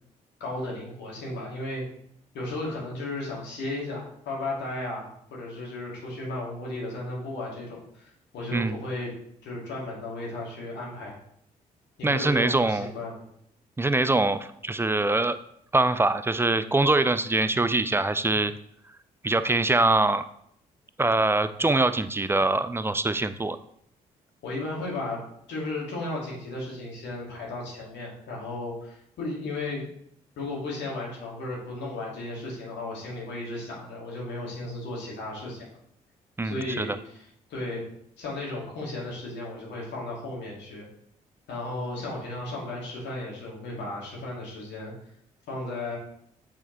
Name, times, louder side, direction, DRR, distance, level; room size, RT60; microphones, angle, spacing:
voice 1, 0.4-1.8 2.3-9.1 9.4-11.2 12.0-13.2 24.4-25.2 25.5-29.9 30.4-35.8 36.4-37.2 37.5-37.8 38.2-40.9 41.5-44.9 45.5-46.0, left 2 dB, 65° left, -3 dB, 2.1 m, -35 dB
voice 2, 12.0-12.9 13.8-15.4 15.7-18.5 19.2-20.2 21.0-23.6 36.4-37.0, right 2 dB, 10° right, 13 dB, 0.4 m, -23 dB
7.8 x 4.2 x 3.0 m, 0.69 s
hypercardioid pair, 40°, 19 cm